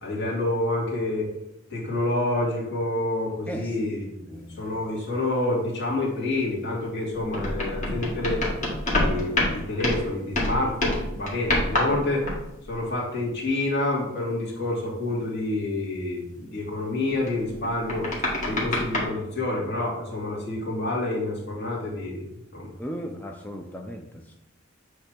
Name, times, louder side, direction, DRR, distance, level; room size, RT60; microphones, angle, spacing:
voice 1, 0.0-1.3 1.7-8.4 8.9-12.3 12.6-18.1 18.4-22.7, left 2 dB, 55° left, -4 dB, 2.6 m, -28 dB
voice 2, 3.5-3.9 4.2-4.8 22.8-24.3, equal, 10° left, 1 dB, 0.5 m, -37 dB
sound 1, 7.1-10.1 10.3-12.8 17.1-19.0, left 1 dB, 40° left, 2.0 m, -27 dB
8.6 x 3.3 x 6.1 m, 0.89 s
head